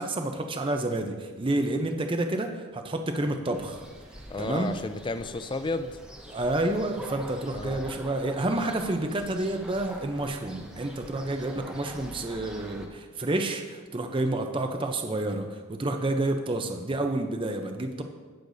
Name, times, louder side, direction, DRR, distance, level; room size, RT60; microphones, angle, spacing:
voice 1, 0.0-3.8 4.4-4.7 6.3-18.0, right 2 dB, 25° right, 5 dB, 0.6 m, -29 dB
sound 1, 3.5-12.9, equal, 5° right, 0.9 m, -45 dB
voice 2, 4.3-6.0 7.5-7.8 11.5-11.7, left 3 dB, 20° left, 11 dB, 0.4 m, -33 dB
18.0 x 6.6 x 2.7 m, 1.4 s
head